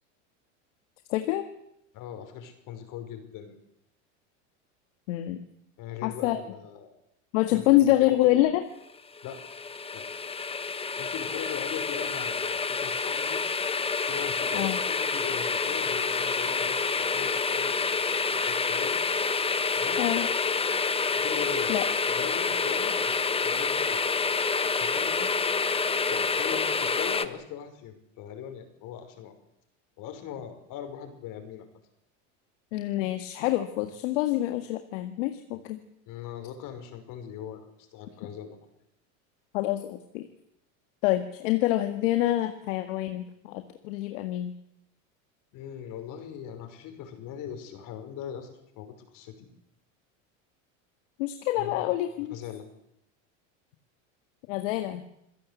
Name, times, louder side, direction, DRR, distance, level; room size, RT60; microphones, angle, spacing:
voice 1, 1.1-1.5 5.1-5.4 6.0-6.4 7.3-8.6 14.5-14.8 20.0-20.3 21.7-21.8 32.7-35.8 39.5-40.3 41.0-44.5 51.2-52.3 54.5-55.0, left 15 dB, 75° left, 8 dB, 1.8 m, -26 dB
voice 2, 1.9-3.5 5.8-6.9 7.5-8.4 9.2-9.4 9.9-10.1 11.0-13.4 14.1-19.0 19.7-20.0 21.2-21.7 22.1-24.0 24.7-25.3 26.1-29.3 30.0-31.7 36.1-38.6 45.5-49.5 51.6-51.9 52.3-52.6, left 9 dB, 55° left, 7 dB, 5.7 m, -40 dB
sound 1, 9.2-27.3, left 4 dB, 15° left, 1.2 m, -28 dB
27.0 x 16.0 x 8.4 m, 0.79 s
supercardioid pair, 110°, 38 cm